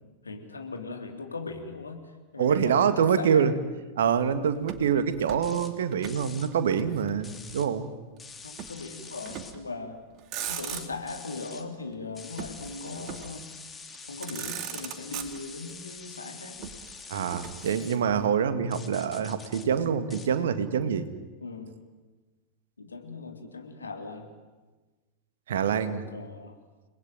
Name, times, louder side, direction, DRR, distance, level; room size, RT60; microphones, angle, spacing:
voice 1, 0.2-2.0 2.3-3.6 8.4-10.0 10.5-13.5 14.1-16.7 21.4-21.8 22.8-24.3 25.9-26.5, left 3 dB, 75° left, 4 dB, 3.7 m, -39 dB
voice 2, 2.4-3.5 4.0-7.9 17.1-21.1 25.5-26.0, right 7 dB, 60° right, 11 dB, 2.0 m, -25 dB
Motor vehicle (road), 4.6-6.3 6.5-7.6 8.6-8.8 9.3-9.7 10.1-11.2 12.4-13.4 13.9-14.0 14.2-15.7 16.6-18.3, right 10 dB, 40° right, 2.4 m, -40 dB
sound 1, 5.4-5.7 6.0-6.5 7.2-7.7 8.2-9.5 10.4-11.6 12.1-18.0 18.7-19.7 20.1-20.3, left 5 dB, 15° left, 3.0 m, -45 dB
30.0 x 20.5 x 9.2 m, 1.2 s
figure-of-eight pair, 90°, 0 cm